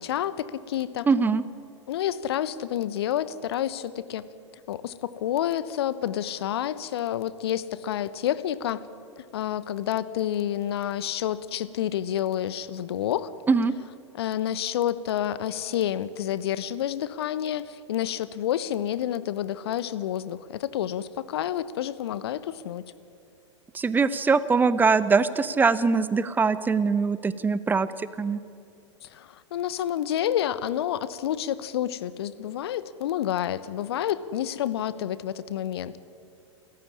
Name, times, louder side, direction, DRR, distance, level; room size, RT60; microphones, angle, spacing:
voice 1, 0.0-1.1 1.9-4.3 4.7-8.9 9.2-13.3 14.2-22.8 29.0-36.0, left 11 dB, 55° left, 17 dB, 1.1 m, -29 dB
voice 2, 1.1-1.4 13.5-13.7 23.7-28.4, right 4 dB, 10° right, 16 dB, 0.9 m, -22 dB
28.5 x 14.5 x 9.8 m, 2.5 s
figure-of-eight pair, 95°, 16 cm